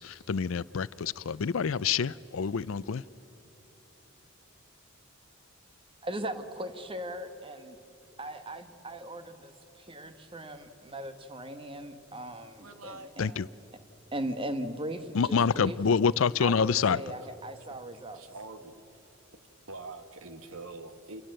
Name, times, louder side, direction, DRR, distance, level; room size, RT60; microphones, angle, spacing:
voice 1, 0.0-3.0 13.2-13.5 15.1-17.0, left 6 dB, 70° left, 0.5 m, -27 dB
voice 2, 6.0-7.8 8.2-13.3 14.1-15.8 16.4-18.2, right 1 dB, 25° right, 1.2 m, -38 dB
voice 3, 12.6-13.5 17.9-19.0 19.7-21.2, right 3 dB, 85° right, 1.6 m, -45 dB
27.5 x 21.5 x 7.7 m
head